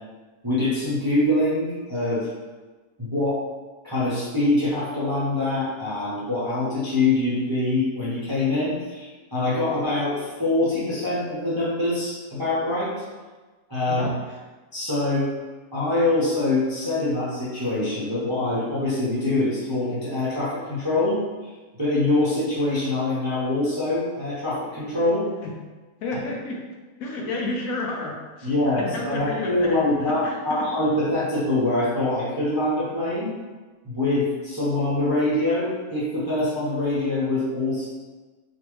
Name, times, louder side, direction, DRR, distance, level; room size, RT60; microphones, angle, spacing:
voice 1, 0.4-2.3 3.0-3.4 3.8-12.9 13.7-14.1 14.7-15.3 15.7-21.5 21.8-25.3 28.4-33.3 33.8-37.9, left 2 dB, 25° right, -10 dB, 0.5 m, -24 dB
voice 2, 13.9-14.4 25.4-25.5 26.0-26.6 27.0-28.5 28.8-30.7, left 2 dB, 70° left, -1 dB, 1.0 m, -31 dB
3.4 x 2.5 x 3.0 m, 1.3 s
omnidirectional pair, 1.6 m